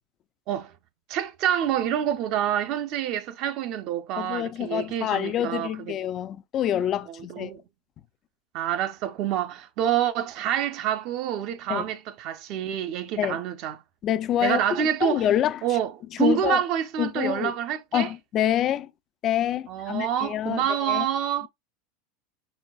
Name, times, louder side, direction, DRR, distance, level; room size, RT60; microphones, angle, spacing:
voice 1, 1.1-6.0 7.3-7.6 8.5-13.8 14.4-15.2 15.6-18.1 19.7-21.5, right 10 dB, 50° right, 0.6 m, -27 dB
voice 2, 4.2-7.5 11.7-11.9 13.2-13.4 14.0-15.6 16.2-16.6 17.0-17.5 17.9-18.9 19.2-21.1, left 11 dB, 40° left, 0.4 m, -26 dB
4.5 x 4.1 x 2.3 m
supercardioid pair, 130°, 0 cm